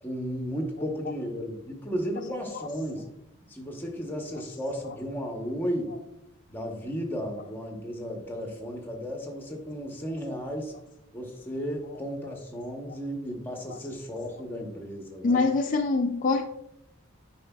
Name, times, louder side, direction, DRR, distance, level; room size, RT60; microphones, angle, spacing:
voice 1, 0.0-3.1 3.5-5.9 6.5-10.7 11.1-15.5, equal, 10° left, 1 dB, 0.9 m, -34 dB
voice 2, 15.2-16.4, left 3 dB, 40° left, 4 dB, 0.3 m, -25 dB
9.2 x 4.9 x 2.3 m, 0.82 s
head